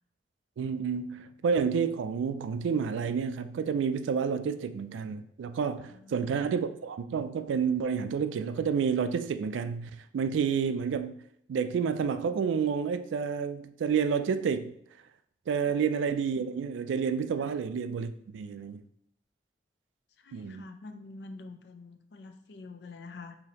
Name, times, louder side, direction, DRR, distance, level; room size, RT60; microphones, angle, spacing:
voice 1, 0.6-11.2 11.5-14.8 15.5-18.8 20.3-20.7, right 6 dB, 90° right, 0.3 m, -30 dB
voice 2, 5.9-6.4 17.4-17.5 20.2-23.4, left 3 dB, 65° left, 0.4 m, -47 dB
4.9 x 2.7 x 2.8 m
head